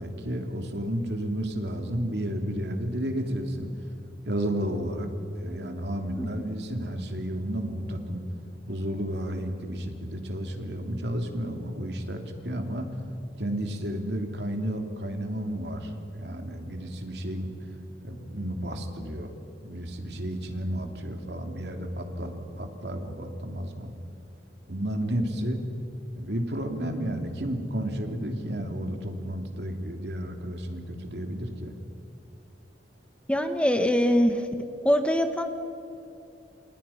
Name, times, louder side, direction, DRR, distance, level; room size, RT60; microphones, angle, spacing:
voice 1, 0.0-3.7 4.2-5.1 5.4-8.2 8.7-12.9 13.4-17.6 18.0-19.3 19.6-23.9 24.7-25.6 26.2-31.7, equal, 65° right, 4 dB, 3.1 m, -32 dB
voice 2, 33.3-34.4 34.8-35.5, equal, 5° left, 7 dB, 1.3 m, -23 dB
29.5 x 28.0 x 5.9 m, 2.6 s
head